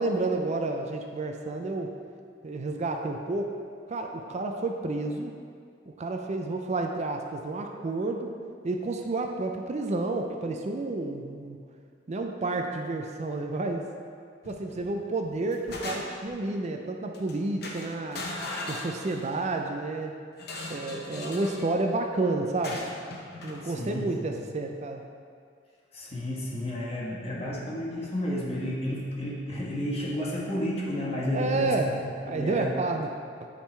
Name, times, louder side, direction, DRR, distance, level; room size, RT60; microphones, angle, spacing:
voice 1, 0.0-1.9 2.4-3.6 3.9-5.4 5.9-8.3 8.6-11.6 12.1-13.9 14.4-18.3 18.7-20.2 20.7-22.8 23.4-25.0 31.3-31.9 32.3-33.1 33.4-33.5, right 2 dB, 40° right, 3 dB, 0.4 m, -30 dB
sound 1, 14.4-14.9 15.2-16.4 17.1-17.3 17.6-19.5 20.4-21.7 22.6-23.6, left 2 dB, 60° left, 0.9 m, -38 dB
voice 2, 23.5-24.4 25.9-32.7, equal, 35° left, -5 dB, 1.4 m, -32 dB
9.6 x 3.7 x 4.3 m, 2.2 s
head